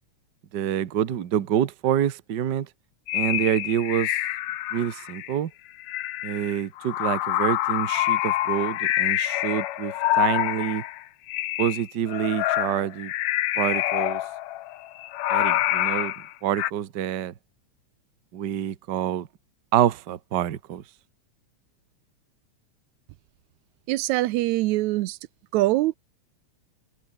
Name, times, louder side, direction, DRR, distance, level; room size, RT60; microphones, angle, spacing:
voice 1, 0.5-2.7 3.1-4.2 4.7-5.5 6.2-10.8 11.6-13.1 13.6-14.2 15.3-16.1 16.4-17.3 18.3-19.3 19.7-20.8, right 10 dB, 50° right, 1.4 m, -27 dB
sound 1, 3.1-5.3 5.8-11.0 11.3-16.7, left 15 dB, 75° left, 2.1 m, -26 dB
voice 2, 23.9-25.2 25.5-25.9, right 17 dB, 80° right, 1.9 m, -23 dB
omnidirectional pair, 3.3 m